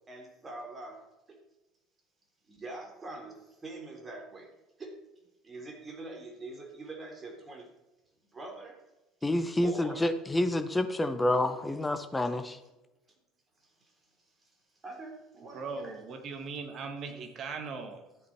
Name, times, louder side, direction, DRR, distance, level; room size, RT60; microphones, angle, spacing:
voice 1, 0.1-1.4 2.5-4.5 4.8-5.1 5.4-7.7 8.3-8.9 9.6-10.1 11.5-11.8 12.2-12.3 13.6-13.9 14.4-14.6 14.8-16.0, right 2 dB, 25° right, 2 dB, 3.7 m, -44 dB
voice 2, 9.2-12.6, left 1 dB, 15° left, 9 dB, 1.2 m, -28 dB
voice 3, 15.5-18.0, right 4 dB, 45° right, 5 dB, 1.9 m, -39 dB
13.0 x 8.3 x 4.6 m, 0.98 s
figure-of-eight pair, 60°, 0 cm